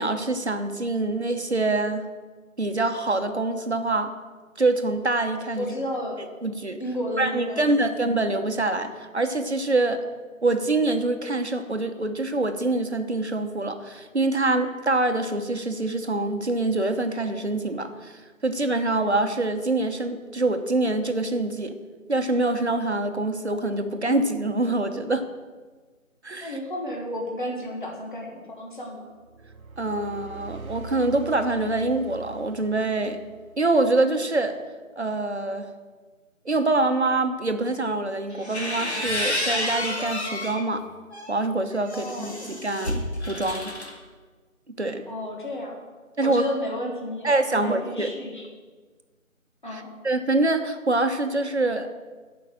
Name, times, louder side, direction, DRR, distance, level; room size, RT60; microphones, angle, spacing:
voice 1, 0.0-2.0 2.6-4.1 4.6-5.7 6.4-6.8 7.2-10.0 10.4-21.8 22.1-25.3 26.2-26.6 29.8-33.2 33.6-34.6 35.0-35.7 36.4-40.8 41.3-43.7 44.8-45.0 46.2-46.4 47.2-48.1 49.7-52.0, right 2 dB, 50° right, 7 dB, 1.2 m, -25 dB
voice 2, 5.6-6.2 6.8-7.8 26.4-29.1 41.9-42.4 45.1-45.8 46.2-48.5 49.6-49.9, left 1 dB, 35° left, -1 dB, 1.5 m, -32 dB
sound 1, 29.2-33.9, right 4 dB, 85° right, 0.9 m, -42 dB
sound 2, 38.3-40.6 41.1-43.9, left 1 dB, 50° left, 2.0 m, -30 dB
14.5 x 5.8 x 7.6 m, 1.4 s
figure-of-eight pair, 170°, 41 cm